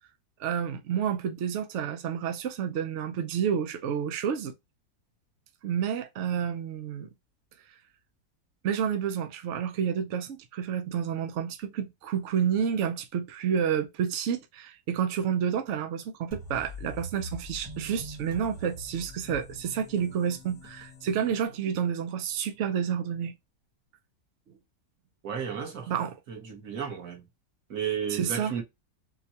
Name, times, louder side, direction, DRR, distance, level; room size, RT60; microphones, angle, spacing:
voice 1, 0.4-4.5 5.6-7.1 8.6-23.4 25.9-26.2 28.1-28.5, right 8 dB, 75° right, 0.6 m, -30 dB
sound 1, 16.3-21.9, left 1 dB, 15° right, 0.9 m, -44 dB
voice 2, 25.2-25.9 26.3-27.2 27.7-28.6, right 7 dB, 55° right, 1.5 m, -33 dB
4.4 x 2.2 x 2.7 m
omnidirectional pair, 1.9 m